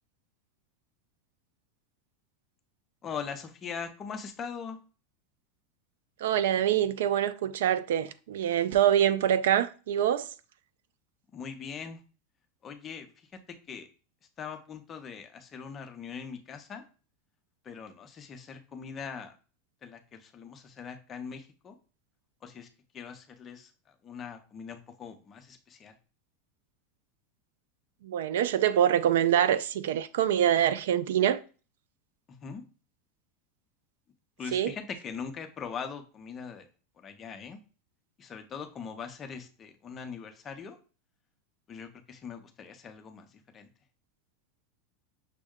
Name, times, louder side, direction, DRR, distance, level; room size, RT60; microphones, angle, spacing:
voice 1, 3.0-4.8 11.3-12.0 12.6-13.3 13.7-13.9 14.4-16.8 17.6-19.3 19.8-21.8 22.4-22.7 22.9-26.0 32.3-32.6 34.4-36.7 37.0-37.6 38.2-40.8 41.7-43.7, left 6 dB, 20° left, 0.6 m, -41 dB
voice 2, 6.2-10.3 28.0-31.4 34.5-34.7, right 10 dB, 85° right, 0.4 m, -25 dB
6.1 x 2.2 x 3.6 m
supercardioid pair, 155°, 0 cm